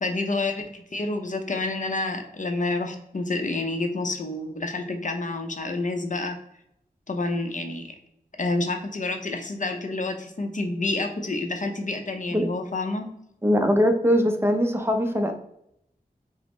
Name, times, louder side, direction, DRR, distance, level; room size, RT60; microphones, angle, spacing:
voice 1, 0.0-6.4 7.1-7.9 8.4-13.1, left 2 dB, 55° left, 5 dB, 0.6 m, -28 dB
voice 2, 13.4-15.3, equal, 15° right, 5 dB, 0.5 m, -21 dB
5.0 x 2.0 x 3.0 m, 0.77 s
wide cardioid pair, 70°, 16 cm